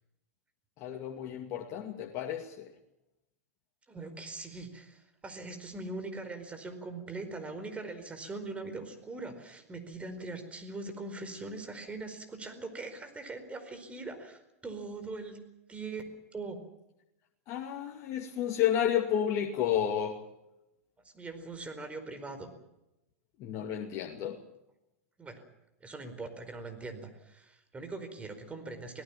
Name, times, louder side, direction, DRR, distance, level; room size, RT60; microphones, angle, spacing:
voice 1, 0.8-2.6 17.5-20.2 23.4-24.4, left 9 dB, 45° left, 2 dB, 2.4 m, -31 dB
voice 2, 3.9-15.4 15.7-16.6 21.1-22.5 25.2-25.4 25.8-29.0, right 3 dB, 15° right, 8 dB, 4.7 m, -41 dB
25.0 x 18.5 x 7.2 m, 0.90 s
hypercardioid pair, 115°, 8 cm